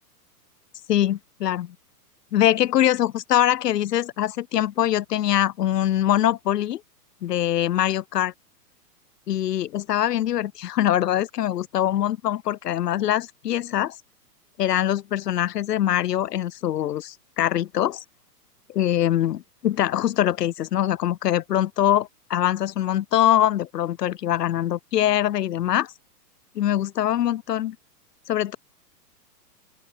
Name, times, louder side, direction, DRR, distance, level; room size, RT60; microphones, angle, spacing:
voice 1, 0.9-1.8 2.3-6.8 7.2-8.3 9.3-14.0 14.6-18.0 18.7-25.9 26.6-27.8 28.3-28.6, left 12 dB, 75° left, 1.7 m, -23 dB
open air
hypercardioid pair, 140°, 49 cm